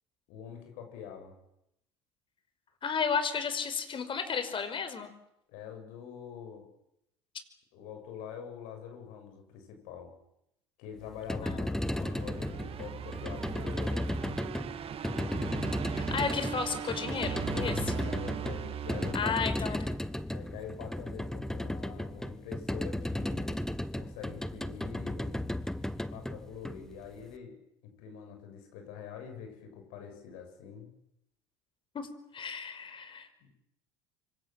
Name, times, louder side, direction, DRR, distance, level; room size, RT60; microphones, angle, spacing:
voice 1, 0.3-1.3 5.5-6.7 7.7-10.1 10.8-14.1 15.0-15.8 17.9-19.5 20.3-23.7 23.9-25.5 26.1-27.6 27.8-30.9 33.4-33.5, left 8 dB, 70° left, 5 dB, 7.6 m, -45 dB
voice 2, 2.8-5.1 11.4-11.6 15.9-17.9 19.1-19.9 31.9-32.1 32.3-33.3, left 5 dB, 35° left, 10 dB, 5.3 m, -33 dB
sound 1, 11.1-27.2, left 1 dB, 5° left, 1.4 m, -35 dB
sound 2, 11.7-20.0, right 9 dB, 45° right, 2.1 m, -39 dB
25.5 x 25.5 x 7.7 m, 0.80 s
hypercardioid pair, 75°, 14 cm